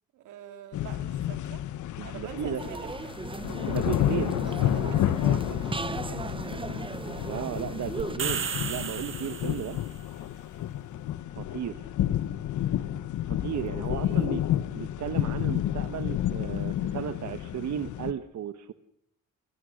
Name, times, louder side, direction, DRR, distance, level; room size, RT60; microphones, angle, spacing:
voice 1, 0.1-1.7 2.0-3.2 3.6-6.7 13.9-14.5, right 9 dB, 85° right, 6 dB, 3.5 m, -46 dB
sound 1, 0.7-18.1, left 12 dB, 75° left, 1.2 m, -30 dB
voice 2, 2.0-2.6 3.7-4.4 7.3-9.8 11.4-11.9 13.3-14.4 14.7-18.7, right 10 dB, 65° right, 10 dB, 1.3 m, -34 dB
sound 2, 2.6-8.2, right 3 dB, 15° right, 1.1 m, -37 dB
sound 3, 8.0-9.9, right 7 dB, 45° right, 1.9 m, -33 dB
29.5 x 20.5 x 6.5 m, 0.73 s
cardioid pair, 90°, 30 cm